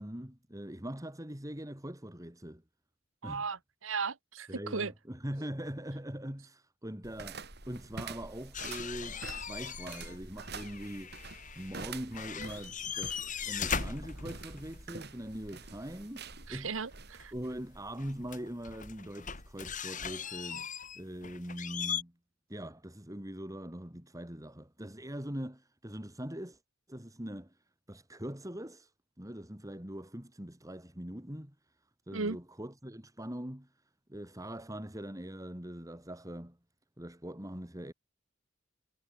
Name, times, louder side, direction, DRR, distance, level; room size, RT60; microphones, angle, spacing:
voice 1, 0.0-2.6 3.2-3.5 4.5-11.2 11.6-16.7 17.3-20.7 21.0-22.1 22.5-26.6 26.9-28.9 29.2-31.7 32.1-33.7 34.1-36.6 37.0-37.9, equal, 15° right, 3.3 m, -42 dB
voice 2, 3.2-4.9 16.5-17.3 32.1-32.4, right 4 dB, 90° right, 1.3 m, -36 dB
sound 1, 7.0-18.3, right 4 dB, 55° right, 5.1 m, -47 dB
sound 2, 8.5-10.2 10.4-11.9 12.1-14.9 17.2-17.3 18.0-22.0, left 7 dB, 40° left, 4.0 m, -39 dB
head